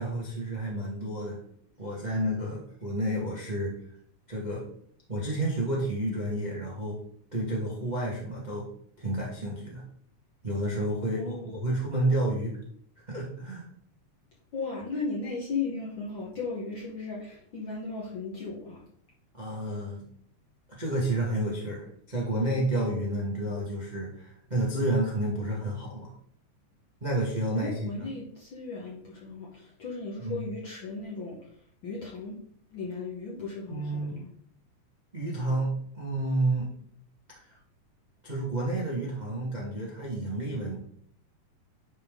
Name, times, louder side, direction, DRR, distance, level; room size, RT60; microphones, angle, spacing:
voice 1, 0.0-1.4 1.8-3.7 4.3-4.7 5.1-7.0 7.3-8.7 9.0-9.8 10.4-12.6 13.0-13.7 19.3-20.1 20.7-26.1 27.0-28.1 30.2-30.5 33.7-34.1 35.1-36.7 37.5-37.6 38.2-40.8, right 1 dB, 35° right, -5 dB, 0.7 m, -30 dB
voice 2, 11.1-11.5 14.5-18.8 27.5-31.4 31.8-32.4 32.7-34.3, left 4 dB, 60° left, -4 dB, 1.3 m, -36 dB
10.5 x 3.6 x 3.6 m, 0.65 s
omnidirectional pair, 3.5 m